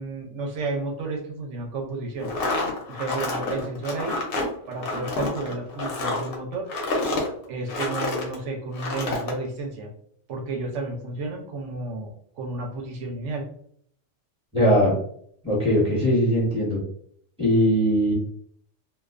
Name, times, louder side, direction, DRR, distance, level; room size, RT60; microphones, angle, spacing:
voice 1, 0.0-2.3 2.9-4.2 4.7-6.7 7.5-9.9 10.3-13.4, right 3 dB, 80° right, 0 dB, 0.9 m, -32 dB
sound 1, 2.2-8.4 8.7-9.3, left 2 dB, 60° left, 0.7 m, -28 dB
voice 2, 14.5-14.9 15.4-16.8 17.4-18.1, equal, 5° right, -4 dB, 0.9 m, -20 dB
2.3 x 2.3 x 2.4 m, 0.64 s
omnidirectional pair, 1.2 m